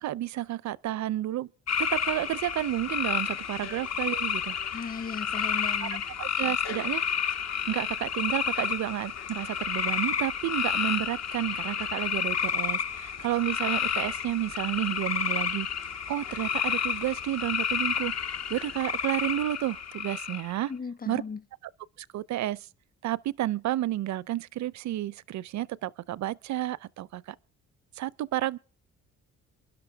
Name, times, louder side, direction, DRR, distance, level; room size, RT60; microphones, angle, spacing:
voice 1, 0.0-1.5 1.8-4.6 5.8-7.3 7.7-20.7 21.1-21.2 22.0-22.7 23.0-27.4 28.0-28.6, right 14 dB, 65° right, 0.6 m, -31 dB
sound 1, 1.7-20.6, left 7 dB, 60° left, 1.2 m, -30 dB
voice 2, 4.7-6.0 20.7-21.4, left 5 dB, 30° left, 1.0 m, -36 dB
26.5 x 11.0 x 3.5 m
cardioid pair, 90°, 30 cm